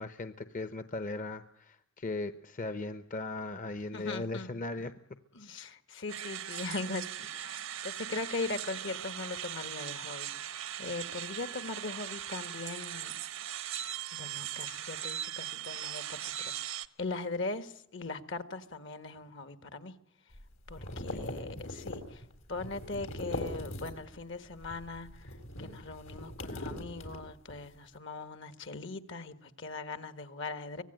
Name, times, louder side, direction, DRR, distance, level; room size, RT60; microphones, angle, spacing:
voice 1, 0.0-4.9 20.8-21.3, left 2 dB, 40° left, 0.9 m, -38 dB
voice 2, 3.9-4.6 5.3-13.1 14.1-19.9 20.7-22.2 22.5-30.8, left 3 dB, 65° left, 1.6 m, -40 dB
sound 1, 6.1-16.9, right 11 dB, 85° right, 1.1 m, -39 dB
sound 2, 20.3-24.2 24.5-27.6, left 1 dB, 85° left, 4.2 m, -41 dB
24.5 x 18.0 x 9.1 m
head